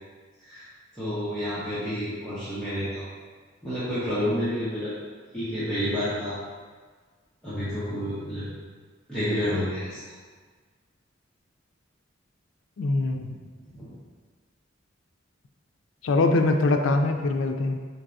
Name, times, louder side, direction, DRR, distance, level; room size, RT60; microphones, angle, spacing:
voice 1, 0.9-3.0 3.6-4.9 5.3-6.4 7.4-8.4 9.1-10.1 13.7-13.9, equal, 5° left, -14 dB, 0.9 m, -29 dB
voice 2, 12.8-13.4 16.0-17.8, left 2 dB, 80° left, 5 dB, 0.4 m, -23 dB
4.5 x 4.0 x 2.6 m, 1.5 s
head